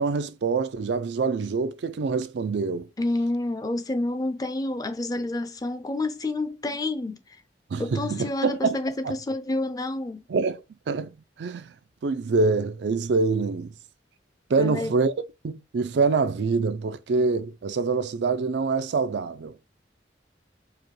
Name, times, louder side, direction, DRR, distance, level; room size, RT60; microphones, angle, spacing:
voice 1, 0.0-2.9 7.7-8.8 10.3-10.6 10.9-11.1 11.4-11.7 12.0-13.7 14.5-15.1 15.4-19.5, right 4 dB, 80° right, 0.4 m, -25 dB
voice 2, 3.0-7.4 7.8-10.2 14.6-15.0, left 2 dB, 20° left, 0.5 m, -29 dB
4.8 x 2.2 x 3.1 m
head